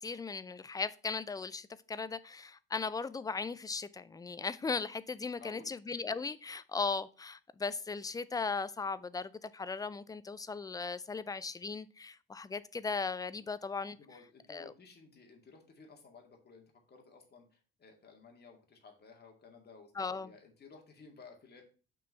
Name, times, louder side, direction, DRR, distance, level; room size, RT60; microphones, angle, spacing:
voice 1, 0.0-14.0 14.5-14.7 20.0-20.3, left 4 dB, 15° left, 0.5 m, -37 dB
voice 2, 5.3-5.7 13.4-13.5 14.0-21.6, left 4 dB, 35° left, 2.1 m, -56 dB
5.9 x 4.6 x 5.6 m
figure-of-eight pair, 50°, 29 cm